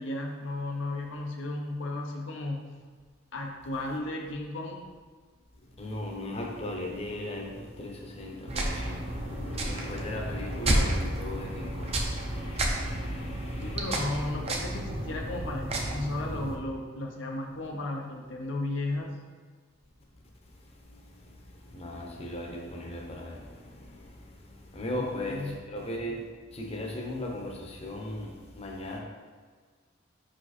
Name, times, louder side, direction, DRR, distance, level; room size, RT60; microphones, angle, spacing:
voice 1, 0.0-2.7 3.3-4.9 13.6-19.2 25.0-25.6, left 2 dB, 65° left, 1 dB, 0.7 m, -34 dB
voice 2, 5.8-14.3 21.3-21.4 21.7-23.5 23.9-24.0 24.7-26.2 26.5-29.0, left 1 dB, 30° left, 0 dB, 0.9 m, -37 dB
sound 1, 8.5-16.5, right 1 dB, 30° right, 0.7 m, -31 dB
5.8 x 5.0 x 4.2 m, 1.5 s
head